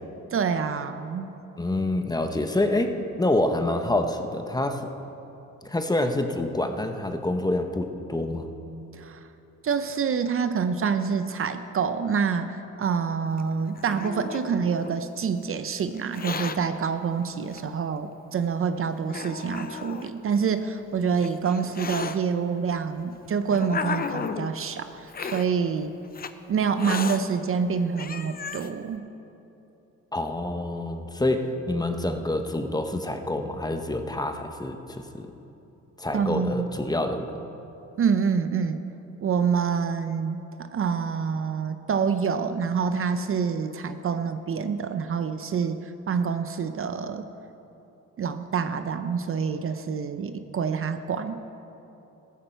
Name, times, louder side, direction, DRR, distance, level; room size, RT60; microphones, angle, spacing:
voice 1, 0.3-1.4 8.9-9.3 9.6-25.9 26.5-29.0 36.1-36.7 38.0-38.8 39.2-47.3 48.2-51.4, right 6 dB, 45° right, 9 dB, 0.7 m, -27 dB
voice 2, 1.6-4.9 5.6-8.5 30.1-35.3 36.0-37.3, left 1 dB, 15° left, 6 dB, 1.0 m, -27 dB
Hiss, 13.4-15.0 16.0-16.6 17.5-17.6 18.4-18.5 19.1-20.1 20.9-22.2 23.0-24.5 25.1-25.5 26.1-26.3 26.8-27.2 27.7-27.8 28.0-28.7, left 6 dB, 30° left, 0.6 m, -34 dB
14.5 x 13.5 x 4.5 m, 2.9 s
cardioid pair, 90°, 30 cm